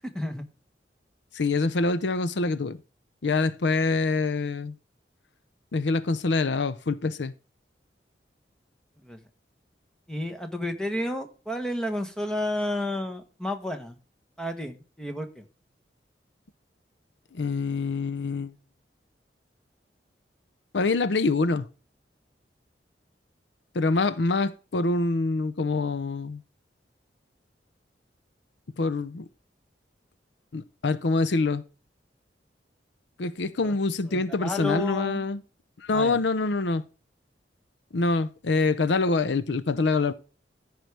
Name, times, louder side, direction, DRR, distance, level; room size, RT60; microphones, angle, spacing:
voice 1, 1.3-2.8 3.2-4.7 5.7-7.3 17.3-18.5 20.7-21.7 23.7-26.4 28.8-29.2 30.5-31.6 33.2-35.4 35.8-36.8 37.9-40.1, left 3 dB, 85° left, 0.6 m, -25 dB
voice 2, 10.1-14.0 14.4-15.5 33.6-33.7 34.1-35.2 35.9-36.2, left 1 dB, 5° left, 1.1 m, -31 dB
14.5 x 4.8 x 3.3 m
head